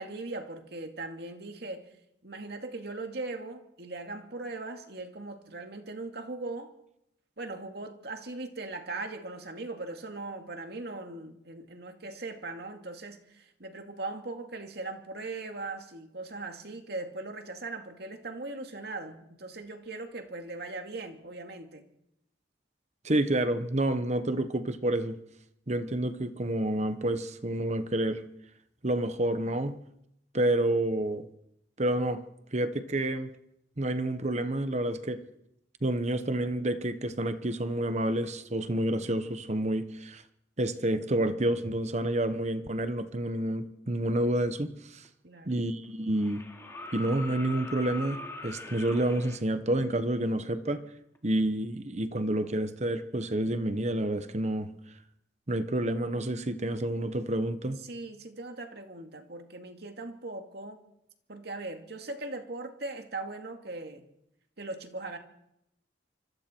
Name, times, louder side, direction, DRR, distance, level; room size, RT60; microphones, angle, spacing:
voice 1, 0.0-1.9 2.2-6.7 7.4-21.9 45.2-45.6 57.8-60.8 61.3-64.1 64.6-65.2, right 2 dB, 60° right, 2.4 m, -39 dB
voice 2, 23.0-25.2 25.7-28.2 28.8-29.8 30.3-31.3 31.8-32.2 32.5-33.3 33.8-35.2 35.8-40.2 40.6-45.0 45.4-46.4 46.9-50.9 51.2-54.7 55.5-57.8, right 1 dB, 40° right, 1.1 m, -29 dB
sound 1, 45.0-45.1 46.2-49.4 51.1-51.2, left 2 dB, 15° left, 2.8 m, -42 dB
25.5 x 25.5 x 4.6 m
head